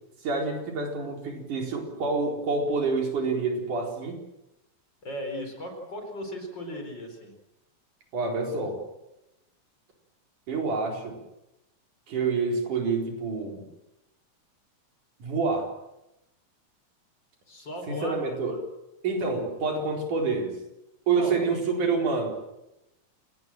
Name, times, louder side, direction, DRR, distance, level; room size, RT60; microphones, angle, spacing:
voice 1, 0.2-4.2 8.1-8.8 10.5-11.2 12.1-13.7 15.2-15.7 17.9-18.6 19.0-20.6 21.1-22.3, right 4 dB, 80° right, 2 dB, 5.7 m, -27 dB
voice 2, 5.0-7.3 17.5-18.2 21.1-21.5, equal, 35° left, 4 dB, 5.2 m, -36 dB
28.5 x 19.5 x 7.6 m, 0.90 s
omnidirectional pair, 3.5 m